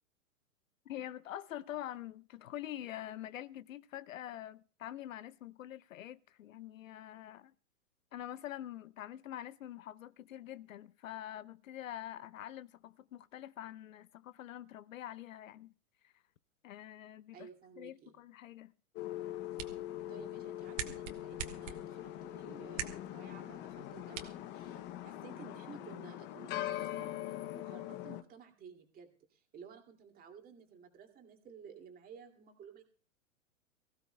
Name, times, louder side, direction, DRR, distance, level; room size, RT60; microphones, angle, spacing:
voice 1, 0.9-7.5 8.1-15.7 16.0-16.1 16.6-17.5 17.8-18.7, left 12 dB, 70° left, 0.6 m, -45 dB
voice 2, 17.3-18.2 20.1-32.8, right 7 dB, 20° right, 2.5 m, -54 dB
sound 1, 19.0-28.2, left 13 dB, 25° left, 0.7 m, -42 dB
sound 2, 19.2-25.2, right 8 dB, 65° right, 1.9 m, -47 dB
24.5 x 15.5 x 2.3 m
hypercardioid pair, 125°, 41 cm